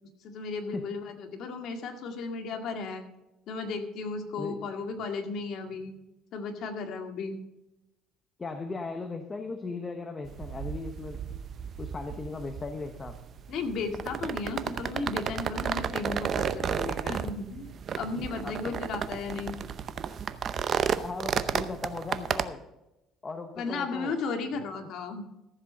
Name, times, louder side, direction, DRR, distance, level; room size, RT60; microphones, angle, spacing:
voice 1, 0.2-3.0 3.5-6.0 6.3-7.4 13.5-17.7 17.9-19.6 23.6-25.3, left 4 dB, 55° left, 5 dB, 2.0 m, -35 dB
voice 2, 4.4-4.7 8.4-11.2 11.8-13.2 18.4-18.7 21.0-22.6 23.2-24.1, left 3 dB, 20° left, 7 dB, 1.0 m, -37 dB
sound 1, 10.2-22.5, right 7 dB, 40° right, 0.7 m, -33 dB
14.0 x 7.5 x 5.5 m, 0.94 s
cardioid pair, 135°, 0 cm